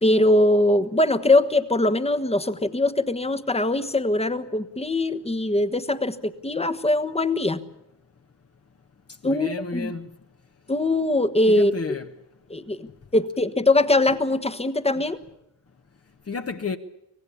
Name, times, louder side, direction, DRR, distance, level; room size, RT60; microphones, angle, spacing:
voice 1, 0.0-7.6 9.2-9.9 10.7-11.7 12.5-12.9 13.1-15.2, left 2 dB, 15° left, 1.3 m, -22 dB
voice 2, 9.2-10.1 11.5-12.1 14.9-15.0 16.3-16.8, left 4 dB, 35° left, 1.3 m, -31 dB
25.0 x 17.5 x 8.5 m
cardioid pair, 95°, 41 cm